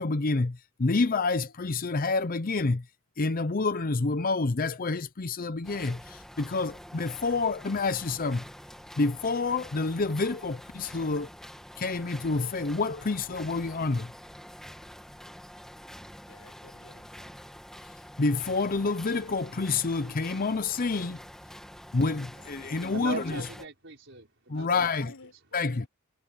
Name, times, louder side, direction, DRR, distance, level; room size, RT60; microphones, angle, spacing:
voice 1, 0.0-2.8 3.2-8.4 9.0-11.3 11.8-14.1 18.2-21.2 21.9-23.2 24.5-25.1 25.5-25.7, left 3 dB, 40° left, 0.7 m, -28 dB
sound 1, 5.6-23.6, equal, ahead, 2.3 m, -47 dB
voice 2, 16.3-17.4 24.5-25.9, left 3 dB, 80° left, 4.6 m, -52 dB
voice 3, 22.4-25.1, right 4 dB, 60° right, 5.6 m, -40 dB
head